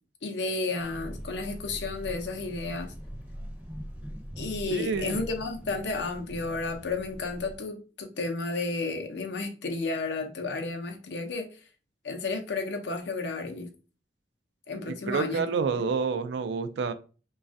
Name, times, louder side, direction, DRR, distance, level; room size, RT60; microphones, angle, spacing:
voice 1, 0.2-2.9 4.4-11.5 12.0-13.7 14.7-15.9, left 3 dB, 70° left, 0.6 m, -32 dB
sound 1, 0.8-7.6, equal, 10° right, 0.6 m, -42 dB
voice 2, 4.7-5.2 14.9-16.9, right 5 dB, 75° right, 0.3 m, -29 dB
3.1 x 2.3 x 2.5 m
head